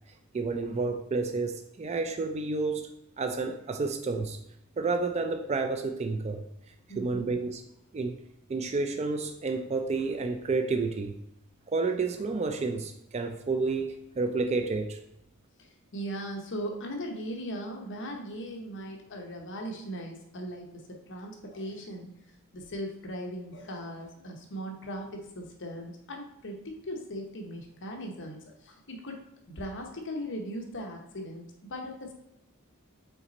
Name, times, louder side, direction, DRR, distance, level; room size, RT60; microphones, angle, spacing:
voice 1, 0.3-2.9 3.2-4.4 4.8-6.4 7.0-7.6 7.9-8.2 8.5-11.1 11.7-15.0, right 3 dB, 30° right, 6 dB, 0.4 m, -30 dB
voice 2, 6.9-7.3 15.6-22.1 22.5-32.1, equal, 60° left, 2 dB, 1.0 m, -39 dB
5.8 x 4.1 x 4.0 m, 0.84 s
head